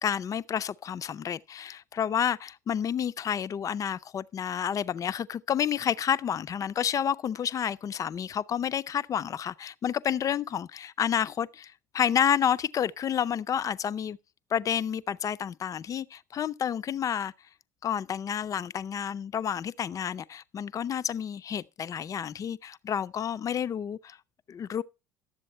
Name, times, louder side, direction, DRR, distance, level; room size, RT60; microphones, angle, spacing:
voice 1, 0.0-14.2 14.5-17.3 17.8-24.2 24.5-24.8, left 8 dB, 35° left, 0.5 m, -30 dB
12.0 x 7.6 x 4.3 m
hypercardioid pair, 70°, 10 cm